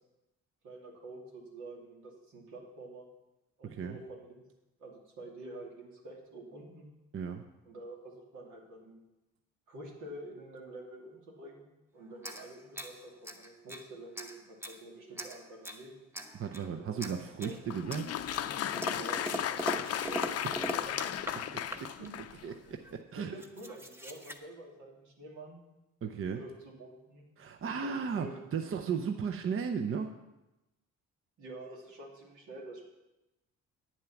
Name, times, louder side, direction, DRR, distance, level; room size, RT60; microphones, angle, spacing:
voice 1, 0.6-3.1 3.6-4.4 4.8-6.9 7.6-9.0 9.7-16.1 16.6-17.6 18.9-21.6 22.0-22.1 23.1-25.6 26.3-27.3 27.8-28.5 31.4-32.8, right 2 dB, 85° right, -1 dB, 2.6 m, -48 dB
voice 2, 3.6-4.0 7.1-7.4 16.3-18.0 21.5-21.9 22.4-23.3 26.0-26.4 27.4-30.1, right 6 dB, 45° right, 5 dB, 0.7 m, -35 dB
sound 1, 12.2-13.9 14.1-14.8 15.2-15.8 16.1-16.7 17.0-17.6 17.9-21.4 21.7-22.1 22.8-22.9 23.2-24.4, equal, 10° right, 1.0 m, -41 dB
Applause, 17.6-22.5, left 10 dB, 55° left, 0.6 m, -35 dB
9.3 x 7.4 x 5.8 m, 0.99 s
cardioid pair, 90°, 30 cm